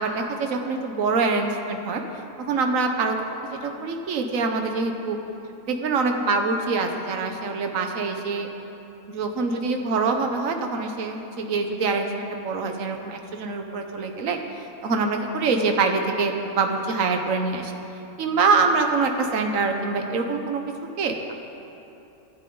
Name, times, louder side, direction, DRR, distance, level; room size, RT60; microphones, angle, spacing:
voice 1, 0.0-2.0 2.4-3.2 3.4-5.2 5.7-8.5 9.1-17.7 18.2-20.6 21.0-21.3, right 4 dB, 65° right, 4 dB, 1.5 m, -25 dB
24.5 x 12.0 x 3.9 m, 2.9 s
omnidirectional pair, 1.6 m